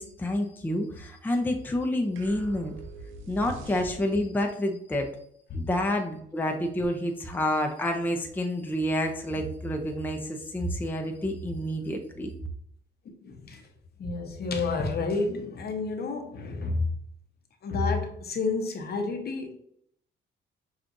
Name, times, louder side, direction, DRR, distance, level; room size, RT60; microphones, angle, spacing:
voice 1, 0.0-2.7 3.3-5.1 5.5-12.3, left 1 dB, 10° left, 4 dB, 0.5 m, -29 dB
sound 1, 2.2-4.4, right 3 dB, 80° right, 0.6 m, -43 dB
voice 2, 13.0-13.7 14.0-16.9 17.6-19.6, left 3 dB, 55° left, 5 dB, 0.8 m, -30 dB
6.1 x 2.4 x 2.6 m, 0.69 s
cardioid pair, 90°, 20 cm